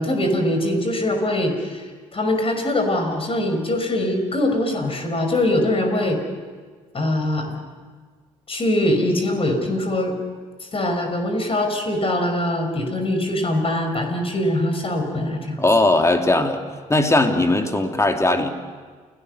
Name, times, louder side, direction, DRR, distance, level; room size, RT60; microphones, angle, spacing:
voice 1, 0.0-1.8 2.1-6.2 6.9-7.6 8.5-10.1 10.7-15.6, left 1 dB, 35° left, 4 dB, 5.6 m, -22 dB
voice 2, 15.6-16.6 16.9-18.5, left 2 dB, 15° left, 5 dB, 2.8 m, -18 dB
29.0 x 18.5 x 6.8 m, 1.5 s
hypercardioid pair, 50°, 17 cm